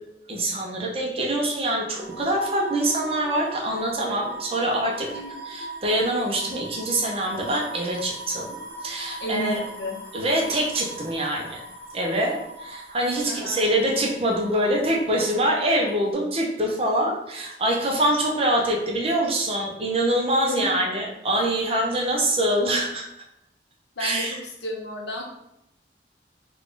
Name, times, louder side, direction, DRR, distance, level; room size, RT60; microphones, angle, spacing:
voice 1, 0.3-5.1 5.4-8.6 8.8-9.6 10.1-11.6 11.9-23.1 24.0-24.4, right 1 dB, 35° right, -1 dB, 0.7 m, -24 dB
sound 1, 1.9-16.1, right 2 dB, 10° left, 0.6 m, -40 dB
voice 2, 9.2-10.0 13.2-13.7 20.5-20.8 24.0-25.2, left 1 dB, 75° left, -1 dB, 0.8 m, -32 dB
3.6 x 2.4 x 3.7 m, 0.83 s
head